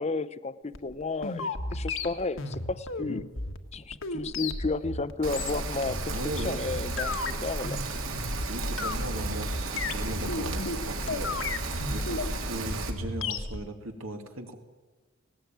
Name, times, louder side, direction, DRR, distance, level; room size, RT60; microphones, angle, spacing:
voice 1, 0.0-3.2 3.7-7.8, left 3 dB, 30° left, 15 dB, 0.7 m, -32 dB
sound 1, 0.7-13.6, left 3 dB, 70° left, 1.6 m, -34 dB
Rain, 5.2-12.9, right 3 dB, 75° right, 3.0 m, -34 dB
voice 2, 6.1-6.6 8.5-11.4 11.9-14.6, right 1 dB, 90° right, 5 dB, 2.7 m, -38 dB
19.0 x 17.5 x 9.2 m, 1.2 s
head